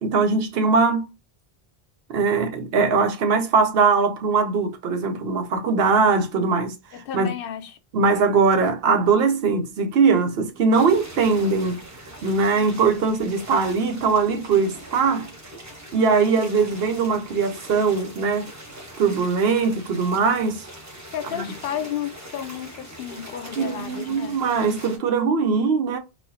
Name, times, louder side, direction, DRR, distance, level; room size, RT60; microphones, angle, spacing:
voice 1, 0.0-1.1 2.1-6.8 7.1-7.4 7.9-11.8 12.2-15.3 15.9-18.5 19.0-20.6 21.3-21.5 23.6-26.0, right 4 dB, 70° right, 0.9 m, -21 dB
voice 2, 6.9-7.8 21.1-24.4, left 9 dB, 65° left, 0.7 m, -32 dB
sound 1, 10.7-25.0, right 1 dB, 15° right, 1.0 m, -41 dB
4.2 x 2.3 x 2.7 m
omnidirectional pair, 1.1 m